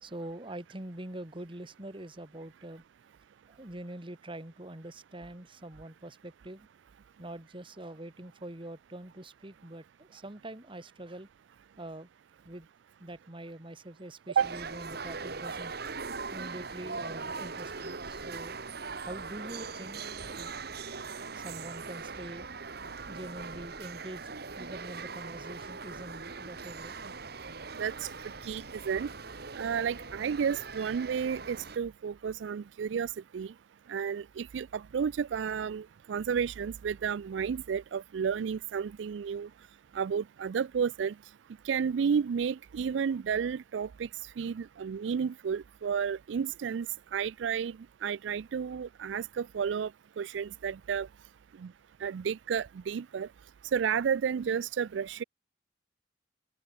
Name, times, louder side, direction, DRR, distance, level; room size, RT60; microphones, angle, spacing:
voice 1, 0.0-2.8 3.5-6.7 7.2-11.3 11.8-12.1 12.4-12.7 13.0-15.7 16.3-18.6 19.0-20.0 20.3-20.5 21.3-22.5 23.1-26.9, right 1 dB, 30° right, 2.2 m, -44 dB
sound 1, 14.4-31.8, right 4 dB, 60° right, 2.0 m, -41 dB
voice 2, 27.8-28.1 28.4-29.1 29.5-33.5 33.9-39.5 39.9-41.1 41.6-44.1 44.4-46.9 47.1-47.8 48.0-49.9 50.2-51.1 51.6-51.7 52.0-53.3 53.7-55.2, right 7 dB, 80° right, 0.4 m, -32 dB
open air
head